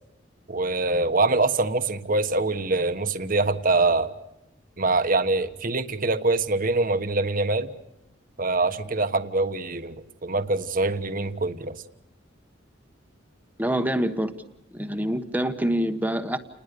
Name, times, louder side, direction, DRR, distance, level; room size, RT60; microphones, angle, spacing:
voice 1, 0.5-4.1 4.8-7.7 8.4-11.8, right 3 dB, 45° right, 9 dB, 1.3 m, -24 dB
voice 2, 13.6-14.3 14.7-16.4, right 1 dB, 10° right, 8 dB, 1.2 m, -25 dB
30.0 x 20.5 x 6.8 m, 0.84 s
head